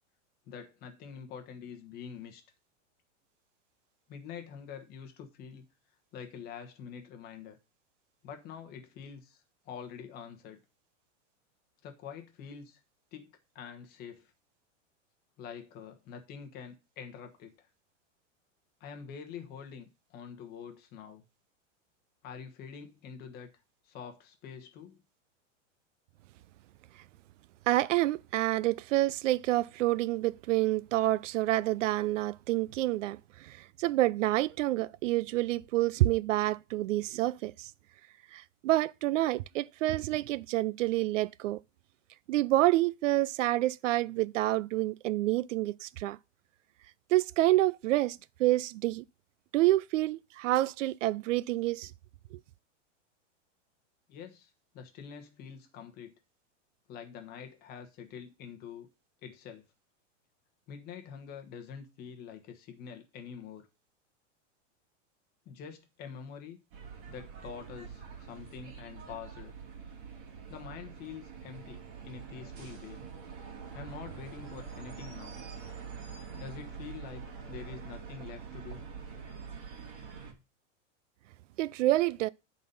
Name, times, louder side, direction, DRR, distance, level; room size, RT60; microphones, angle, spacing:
voice 1, 0.5-2.4 4.1-5.6 6.1-7.6 8.2-10.6 11.8-12.8 13.1-14.3 15.4-17.7 18.8-21.3 22.2-23.5 23.8-25.0 54.1-56.1 56.9-58.9 59.2-59.6 60.7-63.7 65.4-66.6 67.1-69.5 70.5-73.0 73.7-75.4 76.3-77.2 77.5-78.9, left 7 dB, 25° left, 1.2 m, -46 dB
voice 2, 27.7-37.7 38.3-41.6 42.3-46.2 47.1-49.0 49.5-51.9 81.6-82.3, right 16 dB, 80° right, 0.5 m, -28 dB
sound 1, 66.7-80.3, right 6 dB, 45° right, 2.1 m, -45 dB
9.4 x 4.1 x 5.4 m
supercardioid pair, 165°, 38 cm